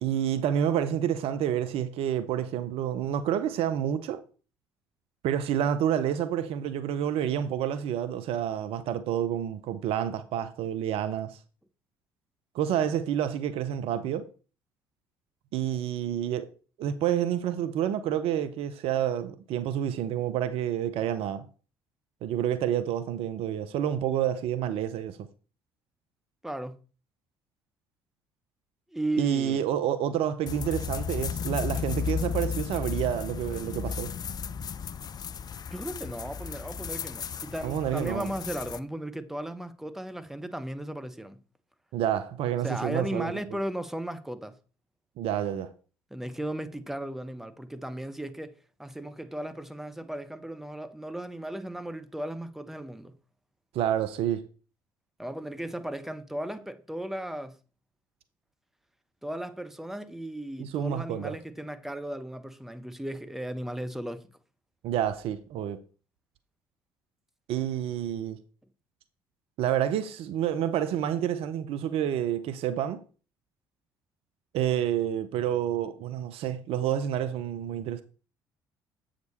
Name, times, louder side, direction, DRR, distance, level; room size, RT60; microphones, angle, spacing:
voice 1, 0.0-4.2 5.2-11.4 12.5-14.3 15.5-16.5 16.8-21.5 22.2-25.2 29.2-34.1 37.6-38.3 41.9-43.3 45.2-45.7 53.7-54.4 60.6-61.4 64.8-65.8 67.5-68.4 69.6-73.0 74.5-78.0, right 10 dB, 55° right, 0.6 m, -29 dB
voice 2, 26.4-26.8 28.9-29.6 35.7-41.4 42.6-44.5 46.1-48.5 48.8-53.1 55.2-57.5 59.2-64.2, right 1 dB, 5° right, 0.9 m, -36 dB
sound 1, 30.5-38.8, left 7 dB, 35° left, 0.4 m, -34 dB
7.9 x 5.1 x 4.2 m
figure-of-eight pair, 50°, 12 cm